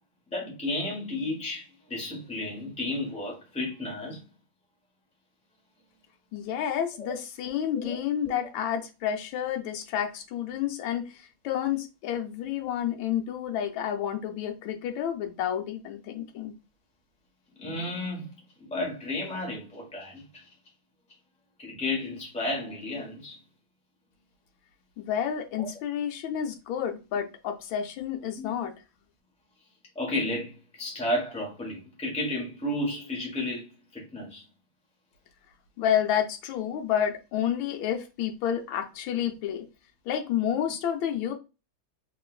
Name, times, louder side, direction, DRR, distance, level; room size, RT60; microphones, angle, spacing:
voice 1, 0.3-4.2 7.0-7.1 7.7-8.0 8.3-8.4 17.6-20.5 21.6-23.4 25.6-25.7 28.4-28.5 29.9-34.4, left 1 dB, 5° left, 0.6 m, -33 dB
voice 2, 6.3-16.5 25.0-28.7 35.8-39.6 40.1-41.3, left 9 dB, 80° left, 1.3 m, -30 dB
3.1 x 2.9 x 2.4 m
omnidirectional pair, 2.2 m